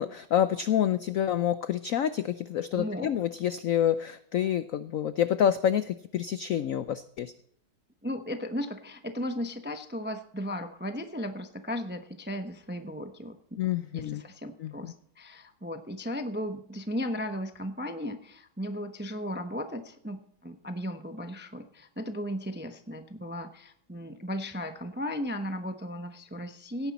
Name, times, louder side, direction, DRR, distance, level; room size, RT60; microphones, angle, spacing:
voice 1, 0.0-7.3 13.6-14.2 14.6-14.9, left 10 dB, 75° left, 12 dB, 0.7 m, -28 dB
voice 2, 2.8-3.1 8.0-13.4 13.9-26.9, equal, 15° right, 7 dB, 0.4 m, -36 dB
17.0 x 10.0 x 4.2 m, 0.68 s
omnidirectional pair, 2.1 m